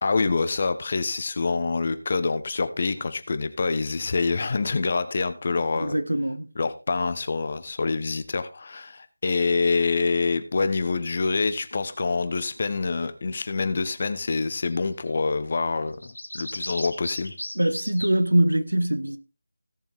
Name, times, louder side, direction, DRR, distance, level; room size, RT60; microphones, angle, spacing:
voice 1, 0.0-5.9 6.6-17.3, left 4 dB, 35° left, 1.2 m, -26 dB
voice 2, 5.7-6.5 17.5-19.2, right 1 dB, 80° right, 1.5 m, -23 dB
sound 1, 14.5-14.8 15.1-15.2 16.0-18.2, left 1 dB, 85° left, 2.1 m, -36 dB
16.5 x 7.0 x 3.7 m
figure-of-eight pair, 165°, 0 cm